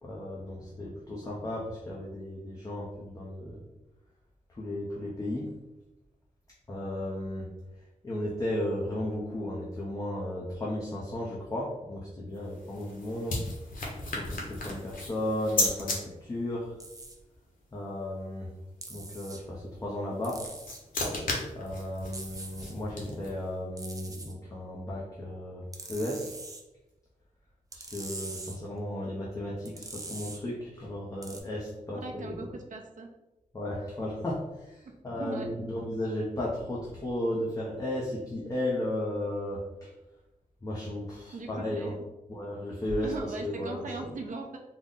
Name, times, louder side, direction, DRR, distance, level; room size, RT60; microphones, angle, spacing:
voice 1, 0.0-3.6 4.6-5.5 6.7-7.5 8.0-13.4 14.1-16.7 17.7-18.5 18.9-20.4 21.5-25.6 25.9-26.3 27.7-32.4 33.5-34.8 35.0-39.9 40.6-41.9 42.3-43.1 43.4-43.9, left 1 dB, 25° left, -5 dB, 0.5 m, -34 dB
sound 1, 12.3-16.0 20.1-23.5, left 2 dB, 90° left, 0.9 m, -34 dB
sound 2, 16.8-17.2 18.8-19.4 20.2-20.8 22.1-22.7 23.8-24.3 25.7-26.6 27.7-28.6 29.6-30.4 31.2-31.4, right 3 dB, 25° right, 0.4 m, -43 dB
voice 2, 32.0-33.1 35.1-35.5 41.3-42.0 43.0-44.6, right 3 dB, 70° right, 2 dB, 0.6 m, -39 dB
3.7 x 2.0 x 3.6 m, 1.0 s
wide cardioid pair, 165°, 14 cm